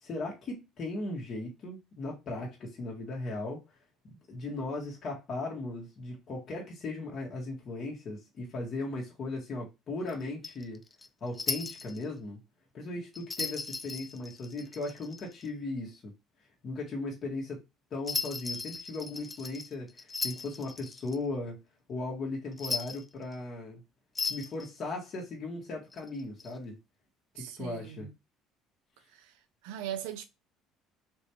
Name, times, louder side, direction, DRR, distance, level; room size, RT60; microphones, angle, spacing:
voice 1, 0.0-3.6 4.0-10.8 11.2-12.4 12.7-16.1 16.6-17.6 17.9-21.6 21.9-23.8 24.3-26.8 27.3-28.1, left 2 dB, 50° left, 1.8 m, -37 dB
sound 1, 10.1-12.1 13.1-15.5 18.1-21.2 22.5-23.4 24.2-24.7 25.9-26.5, left 4 dB, 25° left, 0.5 m, -37 dB
voice 2, 27.4-28.1 29.1-29.3 29.6-30.2, right 10 dB, 85° right, 0.7 m, -39 dB
4.2 x 3.4 x 3.1 m
supercardioid pair, 80°, 0 cm